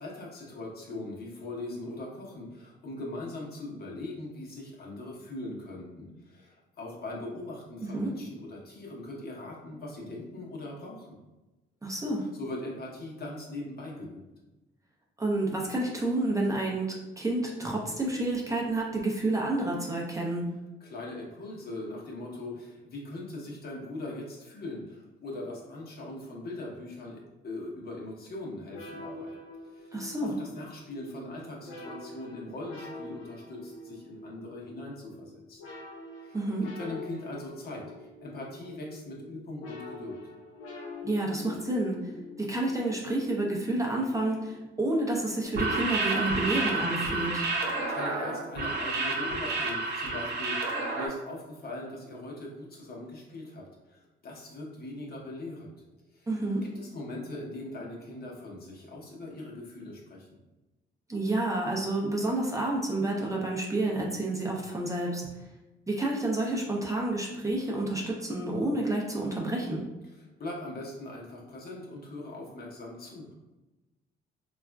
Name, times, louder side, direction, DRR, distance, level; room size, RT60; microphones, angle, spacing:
voice 1, 0.0-11.1 12.2-14.2 20.8-29.4 29.7-29.9 30.2-35.6 36.2-36.4 36.6-40.2 47.9-55.7 56.1-56.3 56.7-60.3 70.1-73.3, left 2 dB, 50° left, -2 dB, 0.9 m, -40 dB
voice 2, 7.8-8.1 11.8-12.3 15.2-20.5 29.9-30.3 36.3-36.6 41.0-42.1 42.4-47.5 56.3-56.6 61.1-65.4 65.9-69.8, right 2 dB, 15° right, -2 dB, 0.5 m, -29 dB
sound 1, 28.7-44.9, left 2 dB, 85° left, 0.7 m, -46 dB
sound 2, 45.4-51.1, right 3 dB, 55° right, 0.7 m, -30 dB
3.5 x 2.4 x 2.2 m, 1.1 s
cardioid pair, 90°, 20 cm